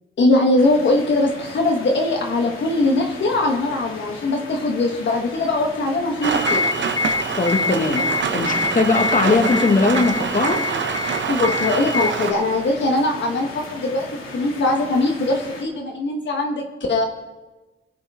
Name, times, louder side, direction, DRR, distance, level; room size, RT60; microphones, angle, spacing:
voice 1, 0.2-6.7 11.3-14.0 14.3-17.1, left 2 dB, 60° left, 1 dB, 1.3 m, -21 dB
sound 1, 0.6-15.6, left 3 dB, 85° left, 2.2 m, -38 dB
sound 2, 6.2-12.1, left 4 dB, 20° left, 0.4 m, -26 dB
Rain, 6.2-12.3, right 6 dB, 65° right, 0.9 m, -25 dB
voice 2, 7.4-8.1 8.3-10.6, left 3 dB, 40° left, 4 dB, 1.7 m, -19 dB
22.0 x 7.6 x 3.5 m, 1.2 s
cardioid pair, 85°, 21 cm